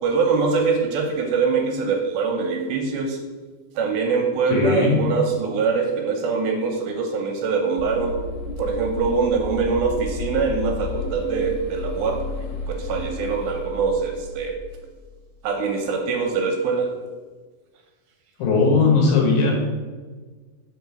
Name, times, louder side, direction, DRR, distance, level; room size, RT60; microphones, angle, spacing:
voice 1, 0.0-3.2 3.8-8.2 8.6-14.6 15.4-16.9, right 5 dB, 80° right, 3 dB, 2.4 m, -23 dB
voice 2, 4.5-5.0 18.4-19.5, left 4 dB, 70° left, 0 dB, 2.6 m, -18 dB
sound 1, 7.8-15.2, left 2 dB, 90° left, 2.6 m, -32 dB
5.7 x 3.8 x 5.7 m, 1.4 s
omnidirectional pair, 4.5 m